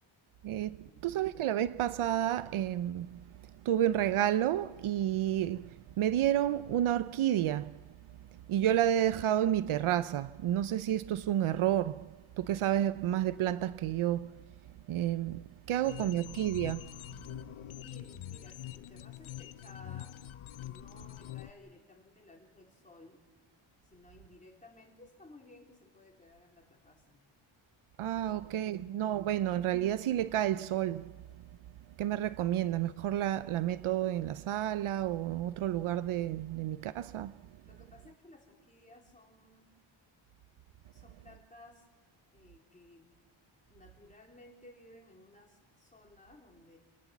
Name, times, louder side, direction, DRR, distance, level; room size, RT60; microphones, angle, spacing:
voice 1, 0.4-3.2 3.6-7.8 8.3-14.4 14.9-16.9 28.0-31.1 32.0-37.4, right 11 dB, 80° right, 0.7 m, -30 dB
voice 2, 15.7-16.2 17.1-20.1 20.6-23.2 23.8-27.2 28.3-28.9 37.6-39.7 40.9-41.9 42.3-43.1 43.7-46.8, left 2 dB, 15° left, 3.9 m, -57 dB
sound 1, 15.8-21.5, left 12 dB, 75° left, 0.8 m, -44 dB
27.5 x 18.0 x 7.2 m
wide cardioid pair, 160°, 49 cm